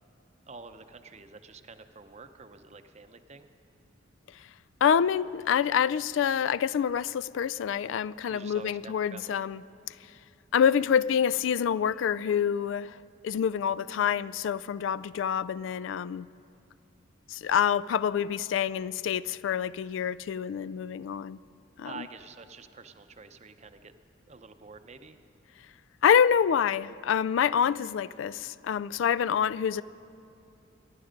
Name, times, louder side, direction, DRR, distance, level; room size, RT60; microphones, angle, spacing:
voice 1, 0.5-3.5 8.2-9.3 21.8-23.9 24.3-25.2, right 4 dB, 35° right, 9 dB, 0.6 m, -47 dB
voice 2, 4.8-9.6 9.9-10.0 10.5-13.0 13.2-16.3 17.3-21.4 21.8-22.0 26.0-29.8, left 8 dB, 75° left, 19 dB, 0.3 m, -26 dB
25.5 x 10.5 x 5.1 m, 2.7 s
head